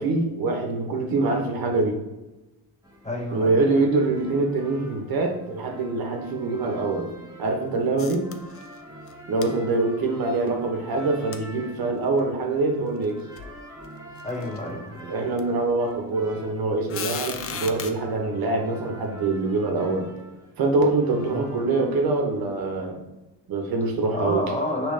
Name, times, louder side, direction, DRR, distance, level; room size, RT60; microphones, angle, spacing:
voice 1, 0.0-2.0 3.3-7.1 7.4-8.3 9.3-13.2 15.1-20.1 20.6-23.0 23.5-24.4, right 3 dB, 55° right, 2 dB, 0.9 m, -24 dB
sound 1, 2.8-22.7, right 1 dB, 10° right, 0.9 m, -45 dB
voice 2, 3.0-3.6 14.2-15.0 21.3-21.6 24.1-24.9, left 1 dB, 15° left, 0 dB, 0.8 m, -29 dB
sound 2, 8.0-8.8 9.1-9.2 9.4-9.5 11.3-11.4 12.2-12.3 13.0-13.1 13.4-13.6 14.2-14.6 15.4-15.5 16.9-17.9, left 7 dB, 35° left, 0.4 m, -34 dB
5.0 x 3.1 x 3.2 m, 1.0 s
cardioid pair, 100°, 42 cm